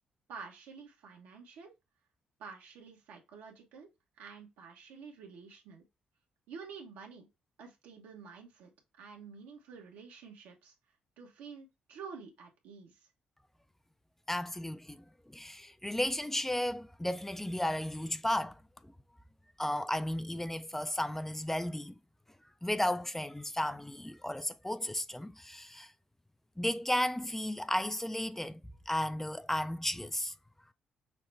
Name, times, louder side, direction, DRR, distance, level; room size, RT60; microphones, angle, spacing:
voice 1, 0.3-1.7 2.4-3.9 4.2-5.8 6.5-7.3 7.6-8.7 9.0-10.7 11.2-13.1, right 5 dB, 80° right, 1.2 m, -49 dB
voice 2, 14.3-18.9 19.6-21.9 22.6-25.9 26.6-28.6 28.9-30.3, left 1 dB, 10° left, 0.4 m, -34 dB
5.7 x 2.2 x 3.3 m
hypercardioid pair, 45°, 3 cm